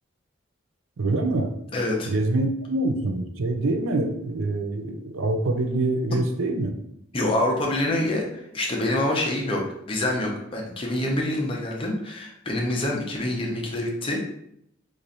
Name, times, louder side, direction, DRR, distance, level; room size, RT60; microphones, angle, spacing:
voice 1, 1.0-1.6 2.1-6.8, right 2 dB, 80° right, 5 dB, 0.5 m, -25 dB
voice 2, 1.7-2.1 7.1-9.6 9.9-14.2, left 1 dB, 25° left, -1 dB, 0.6 m, -26 dB
3.1 x 2.5 x 4.0 m, 0.74 s
head